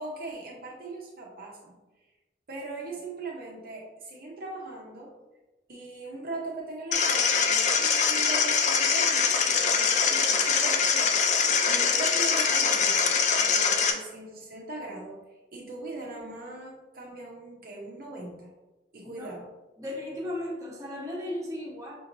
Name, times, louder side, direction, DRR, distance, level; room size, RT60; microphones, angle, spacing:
voice 1, 0.0-1.8 2.5-5.1 5.7-15.2 15.5-18.5 18.9-19.4, right 2 dB, 55° right, -2 dB, 0.7 m, -40 dB
sound 1, 6.9-13.9, left 6 dB, 40° left, 0.4 m, -23 dB
voice 2, 19.0-19.3 19.8-21.9, left 1 dB, 20° right, -4 dB, 1.0 m, -35 dB
6.0 x 3.0 x 2.6 m, 1.1 s
head